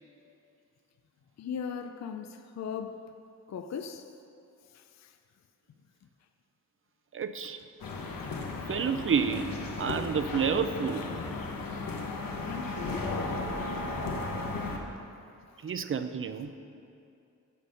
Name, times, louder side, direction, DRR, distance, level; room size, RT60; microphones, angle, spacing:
voice 1, 1.4-3.2 3.5-4.1 4.7-5.2 12.4-13.5, left 6 dB, 55° left, 0.5 m, -39 dB
voice 2, 7.1-7.6 8.7-11.1 15.6-16.5, right 6 dB, 40° right, 0.5 m, -30 dB
sound 1, 7.8-14.8, left 3 dB, 80° left, 1.2 m, -35 dB
15.0 x 5.3 x 5.6 m
wide cardioid pair, 150°, 33 cm